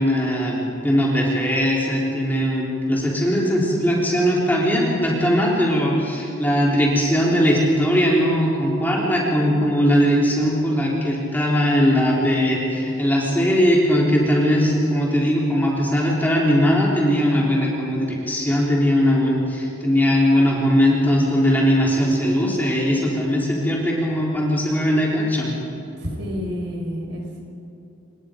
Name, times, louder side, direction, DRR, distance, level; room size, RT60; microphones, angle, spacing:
voice 1, 0.0-25.5, equal, 10° left, -4 dB, 3.5 m, -19 dB
voice 2, 26.0-27.4, equal, 60° right, 0 dB, 4.9 m, -29 dB
26.5 x 21.0 x 5.2 m, 3.0 s
head